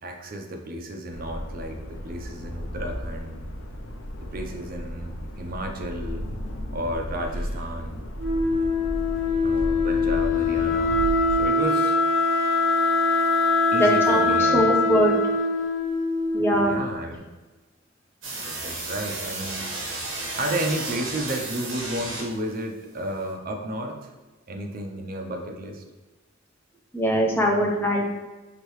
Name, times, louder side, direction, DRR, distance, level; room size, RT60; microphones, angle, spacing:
voice 1, 0.0-3.5 4.2-6.3 6.7-8.1 9.4-11.1 11.4-12.0 13.7-14.8 16.5-17.3 18.4-19.7 20.3-24.1 24.5-25.8, right 1 dB, 45° right, 4 dB, 0.5 m, -32 dB
sound 1, 1.1-11.5, equal, 85° left, 0.5 m, -34 dB
Wind instrument woodwind instrument, 8.2-16.9, left 3 dB, 50° left, 1.2 m, -23 dB
voice 2, 13.7-15.2 16.3-16.7 26.9-28.1, equal, 10° left, -1 dB, 0.6 m, -22 dB
sound 2, 18.2-22.5, right 2 dB, 65° right, 1.1 m, -33 dB
5.0 x 2.7 x 3.1 m, 1.2 s
head